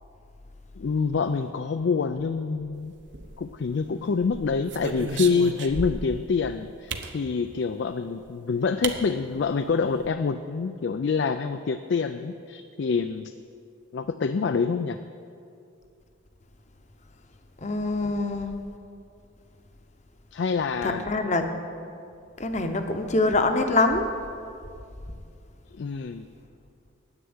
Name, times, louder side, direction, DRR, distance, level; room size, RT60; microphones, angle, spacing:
voice 1, 0.8-2.9 3.4-13.3 13.9-15.0 20.3-21.0 25.7-26.2, left 5 dB, 60° left, 9 dB, 0.4 m, -26 dB
sound 1, 3.0-3.7 4.2-6.2 6.9-7.2 8.3-8.4 8.8-9.0 9.3-9.4 9.7-10.1, right 4 dB, 60° right, 0.8 m, -34 dB
voice 2, 17.6-18.5 20.8-21.5 22.4-24.1, left 2 dB, 35° left, 6 dB, 0.8 m, -24 dB
9.7 x 8.2 x 9.5 m, 2.4 s
head